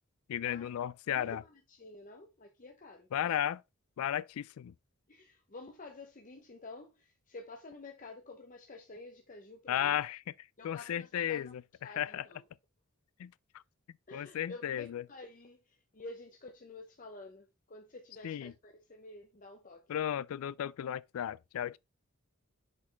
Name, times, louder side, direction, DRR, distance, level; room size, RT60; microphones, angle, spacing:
voice 1, 0.3-1.4 3.1-3.6 4.0-4.7 9.7-12.3 13.2-13.3 14.1-15.0 18.2-18.5 19.9-21.8, left 10 dB, 80° left, 0.3 m, -34 dB
voice 2, 1.1-3.3 5.1-10.0 10.6-11.5 11.8-12.4 14.1-19.8, left 2 dB, 40° left, 0.8 m, -50 dB
6.7 x 5.2 x 3.3 m
head